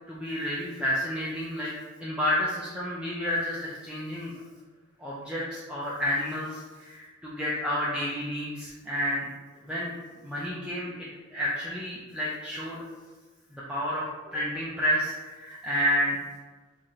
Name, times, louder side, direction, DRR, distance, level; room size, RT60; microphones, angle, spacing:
voice 1, 0.1-1.7 2.0-4.3 5.0-9.3 9.6-9.9 10.2-12.8 13.5-16.2, equal, 5° right, -7 dB, 0.4 m, -30 dB
2.9 x 2.4 x 4.3 m, 1.3 s
head